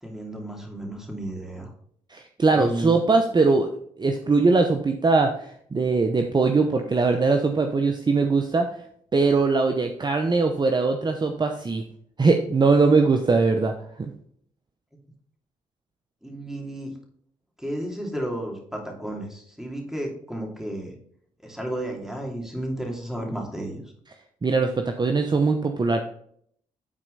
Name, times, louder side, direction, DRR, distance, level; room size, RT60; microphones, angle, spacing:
voice 1, 0.0-1.7 2.5-3.0 16.2-16.9 17.6-21.0 21.4-23.8, right 1 dB, 5° right, 1 dB, 2.8 m, -33 dB
voice 2, 2.1-3.7 4.0-8.7 9.1-11.8 12.2-14.1 24.4-26.0, right 4 dB, 30° right, 5 dB, 0.8 m, -21 dB
9.8 x 4.4 x 4.0 m, 0.66 s
supercardioid pair, 60°, 14 cm